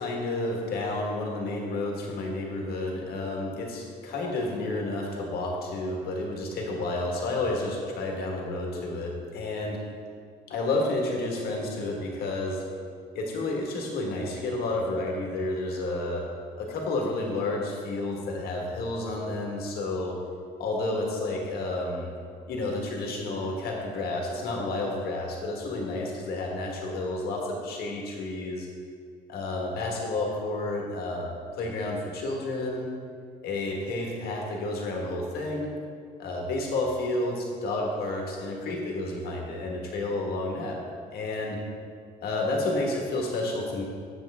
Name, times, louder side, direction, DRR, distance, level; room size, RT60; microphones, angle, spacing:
voice 1, 0.0-9.8 10.5-12.6 13.1-16.3 16.6-20.2 20.6-22.1 22.5-28.7 29.3-31.3 31.6-32.9 33.4-35.7 36.2-40.8 41.1-41.6 42.2-43.8, left 2 dB, 65° left, 0 dB, 1.6 m, -30 dB
7.4 x 7.3 x 3.5 m, 2.2 s
cardioid pair, 110°, 17 cm